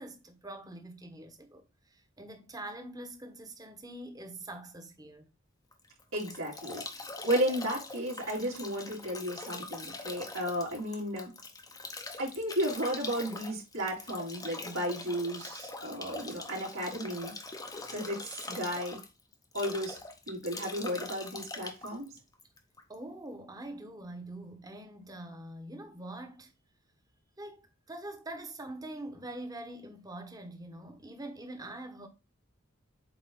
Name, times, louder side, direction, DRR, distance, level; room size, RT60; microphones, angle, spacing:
voice 1, 0.0-1.6 1.9-5.3 22.9-26.5 27.4-27.6 27.9-32.1, right 1 dB, 20° right, 1.2 m, -44 dB
Bathtub (filling or washing) / Drip / Trickle dribble, 5.7-22.9, left 3 dB, 20° left, 0.8 m, -43 dB
voice 2, 6.1-6.8 7.2-11.3 12.2-17.3 17.9-19.0 19.5-20.0 20.3-22.1, equal, 85° right, 3.4 m, -33 dB
8.0 x 3.2 x 3.8 m
head